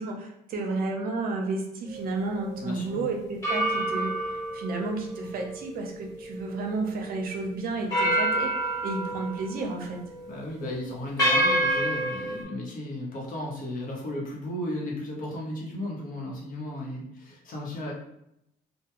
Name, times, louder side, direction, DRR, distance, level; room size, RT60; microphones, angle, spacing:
voice 1, 0.0-4.1 4.5-10.0, right 3 dB, 60° right, 1 dB, 0.6 m, -32 dB
sound 1, 1.9-2.1 3.4-6.8 7.2-7.3 7.9-9.8 10.1-10.3 11.2-12.4, right 1 dB, 20° left, 1.2 m, -28 dB
voice 2, 2.6-3.0 10.3-17.9, left 1 dB, 55° left, -3 dB, 0.9 m, -35 dB
2.2 x 2.2 x 2.9 m, 0.78 s
cardioid pair, 110°, 17 cm